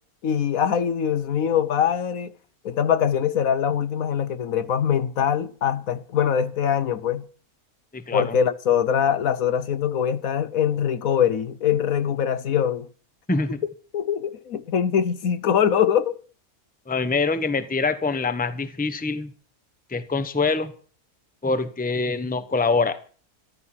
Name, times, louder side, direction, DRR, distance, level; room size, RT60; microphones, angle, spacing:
voice 1, 0.2-2.3 2.6-7.2 8.1-12.9 13.3-13.4 13.9-16.2, left 8 dB, 65° left, 1.2 m, -23 dB
voice 2, 7.9-8.4 13.3-13.6 16.9-19.3 19.9-20.7 21.4-23.0, left 4 dB, 5° left, 0.9 m, -24 dB
14.0 x 12.5 x 5.9 m
omnidirectional pair, 1.6 m